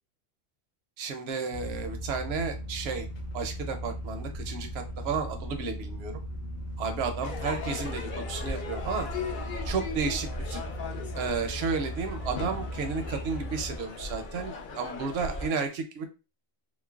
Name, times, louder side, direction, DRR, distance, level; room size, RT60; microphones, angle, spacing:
voice 1, 1.0-3.1 3.3-6.2 6.8-9.1 9.6-10.6 11.2-16.1, right 5 dB, 65° right, 5 dB, 0.7 m, -32 dB
sound 1, 1.5-13.8, equal, 85° left, 1.1 m, -38 dB
Crowd / Fireworks, 7.2-15.5, left 4 dB, 60° left, 0.5 m, -38 dB
3.1 x 2.0 x 2.3 m, 0.30 s
omnidirectional pair, 1.4 m